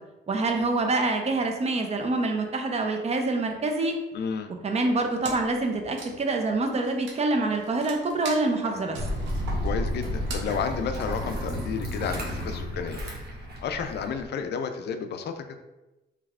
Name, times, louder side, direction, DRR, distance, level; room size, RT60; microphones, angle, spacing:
voice 1, 0.3-3.9 4.6-9.0, right 2 dB, 35° right, 4 dB, 0.6 m, -26 dB
voice 2, 4.1-4.5 8.6-8.8 9.6-13.0 13.6-15.4, left 6 dB, 60° left, 8 dB, 0.4 m, -32 dB
Wood, 5.2-5.6 5.9-11.4, right 3 dB, 75° right, 0.7 m, -41 dB
sound 1, 8.9-14.2, equal, 50° right, 1.0 m, -32 dB
3.3 x 3.1 x 2.4 m, 1.0 s
cardioid pair, 90°, 20 cm